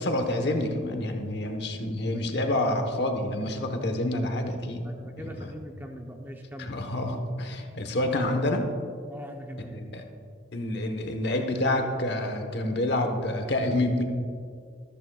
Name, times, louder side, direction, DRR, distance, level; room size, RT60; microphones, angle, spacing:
voice 1, 0.0-4.8 5.4-5.5 6.6-8.6 9.7-10.0 10.5-14.0, left 1 dB, 55° left, 5 dB, 1.1 m, -28 dB
voice 2, 4.8-6.7 9.1-9.8, equal, 10° right, 2 dB, 0.7 m, -41 dB
14.0 x 13.5 x 2.3 m, 2.3 s
head